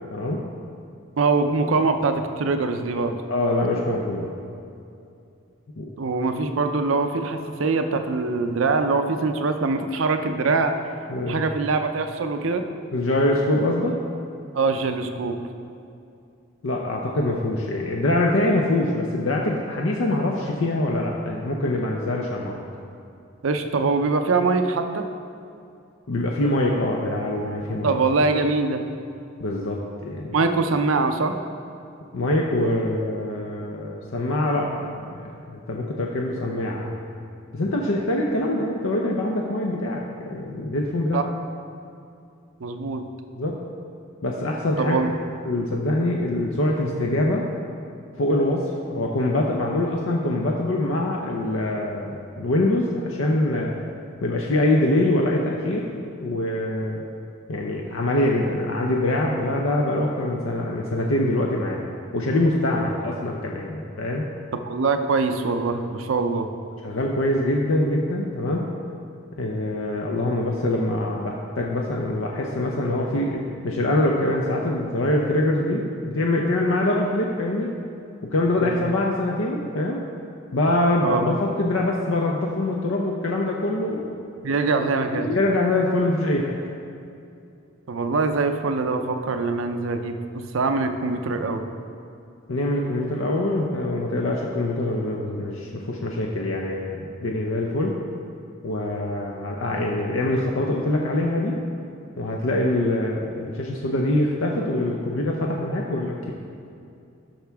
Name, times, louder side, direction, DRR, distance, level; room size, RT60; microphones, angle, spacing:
voice 1, 0.1-0.4 3.3-4.3 5.8-5.9 11.1-11.5 12.9-13.9 16.6-22.6 26.1-27.9 29.4-30.4 32.1-36.9 37.5-41.2 43.4-43.6 44.2-45.0 45.4-47.5 48.2-53.7 54.2-57.0 57.5-61.9 62.1-64.3 66.8-68.7 69.4-77.7 78.3-80.0 80.5-84.1 85.1-86.5 92.5-98.0 98.6-101.6 102.2-106.3, left 1 dB, 70° left, -1 dB, 0.6 m, -24 dB
voice 2, 1.2-3.2 6.0-10.7 11.3-12.7 14.5-15.4 23.4-25.1 27.8-28.8 30.3-31.4 41.1-41.3 42.6-43.0 44.8-45.1 64.6-66.5 78.6-78.7 81.0-81.2 84.4-85.3 87.9-91.6, right 3 dB, 75° right, 7 dB, 0.5 m, -23 dB
11.5 x 5.8 x 3.5 m, 2.5 s
head